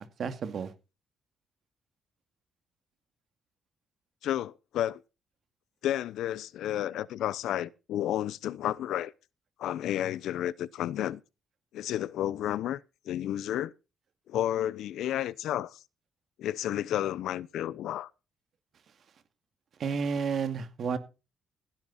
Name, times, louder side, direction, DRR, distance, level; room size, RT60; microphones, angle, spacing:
voice 1, 0.2-0.7 19.8-21.0, right 6 dB, 60° right, 2.3 m, -31 dB
voice 2, 4.2-5.0 5.8-9.1 9.6-11.2 11.7-12.8 13.1-13.7 14.3-15.8 16.4-18.1, left 12 dB, 80° left, 0.7 m, -31 dB
16.0 x 10.5 x 4.2 m
cardioid pair, 90°, 0 cm